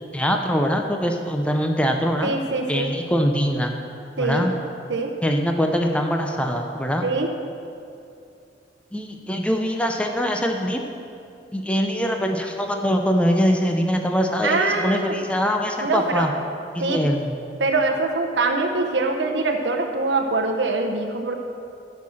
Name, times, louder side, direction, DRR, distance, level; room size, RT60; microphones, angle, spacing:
voice 1, 0.1-2.3 2.7-3.7 4.2-4.5 5.2-7.1 8.9-10.8 11.5-16.3 16.7-17.3, equal, 5° left, 3 dB, 0.6 m, -23 dB
voice 2, 2.2-2.9 4.2-4.5 4.9-5.1 7.0-7.3 14.4-15.2 15.8-16.3 16.8-17.0 17.6-21.4, right 3 dB, 85° right, 2 dB, 0.8 m, -23 dB
13.0 x 5.8 x 6.3 m, 2.6 s
head